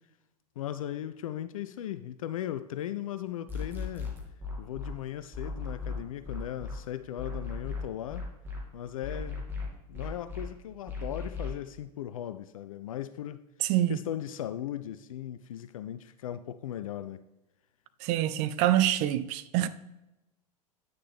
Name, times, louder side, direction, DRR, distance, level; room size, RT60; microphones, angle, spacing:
voice 1, 0.6-4.1 4.6-8.3 8.7-9.5 9.9-13.4 13.9-17.2, left 11 dB, 55° left, 0.4 m, -37 dB
sound 1, 3.5-4.9 5.3-6.7 7.2-8.6 9.0-10.4 10.9-11.5, left 4 dB, 10° right, 2.3 m, -36 dB
voice 2, 13.6-14.0 18.0-19.7, right 13 dB, 35° right, 0.5 m, -26 dB
9.3 x 6.6 x 3.5 m
figure-of-eight pair, 95°, 21 cm